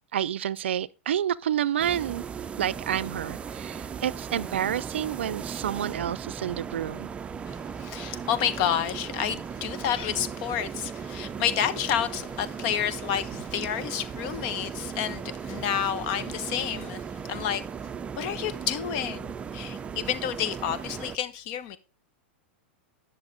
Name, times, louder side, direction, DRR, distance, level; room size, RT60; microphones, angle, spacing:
voice 1, 0.1-2.2 2.6-7.1, right 10 dB, 80° right, 0.4 m, -29 dB
sound 1, 1.8-21.2, right 6 dB, 20° right, 0.5 m, -37 dB
voice 2, 7.5-17.6 18.2-21.8, left 9 dB, 50° left, 1.1 m, -30 dB
10.5 x 6.7 x 3.9 m
hypercardioid pair, 115°, 6 cm